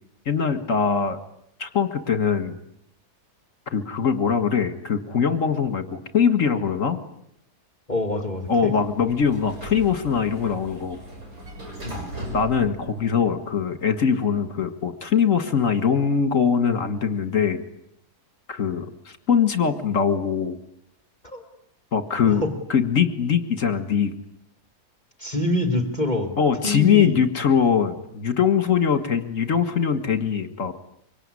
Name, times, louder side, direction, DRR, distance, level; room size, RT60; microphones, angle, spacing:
voice 1, 0.3-1.2 1.6-2.6 3.7-7.0 8.5-11.0 12.3-17.6 18.5-20.6 21.9-22.4 22.7-24.1 26.4-30.7, left 7 dB, 50° left, 9 dB, 2.1 m, -22 dB
voice 2, 7.9-8.7 11.8-12.0 21.2-21.4 22.3-22.5 25.2-26.4 26.6-27.2, left 1 dB, 25° left, 6 dB, 2.7 m, -26 dB
Sliding door, 8.4-13.6, equal, 60° right, 6.5 m, -39 dB
25.0 x 24.0 x 9.8 m, 0.75 s
omnidirectional pair, 1.7 m